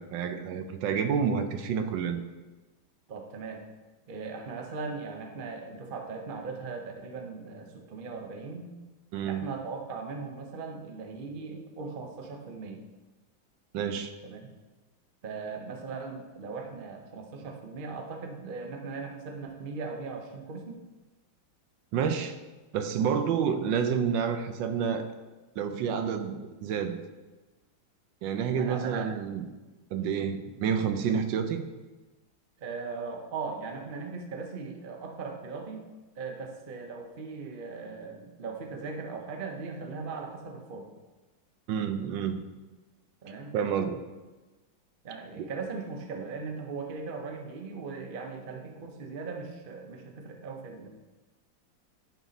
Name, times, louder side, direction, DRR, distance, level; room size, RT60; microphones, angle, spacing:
voice 1, 0.0-2.2 9.1-9.5 13.7-14.1 21.9-22.4 22.7-25.1 25.6-27.0 28.2-29.5 29.9-31.6 41.7-42.4 43.5-44.0 45.4-45.5, right 7 dB, 75° right, 8 dB, 1.3 m, -29 dB
voice 2, 3.1-3.6 4.1-8.7 9.2-12.8 14.2-14.4 15.2-20.8 28.5-28.9 32.6-35.8 36.2-40.9 43.2-43.5 45.0-50.9, right 4 dB, 55° right, 3 dB, 0.5 m, -39 dB
10.5 x 4.0 x 4.0 m, 1.2 s
omnidirectional pair, 2.1 m